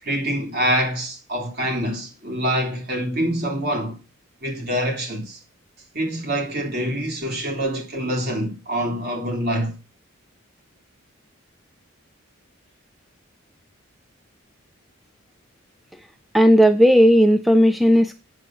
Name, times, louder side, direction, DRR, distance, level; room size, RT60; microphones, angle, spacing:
voice 1, 0.0-4.0 4.4-5.4 5.9-9.7, equal, 50° right, 3.2 m, -25 dB
voice 2, 16.3-18.2, equal, ahead, 0.4 m, -14 dB
9.0 x 7.3 x 6.2 m
head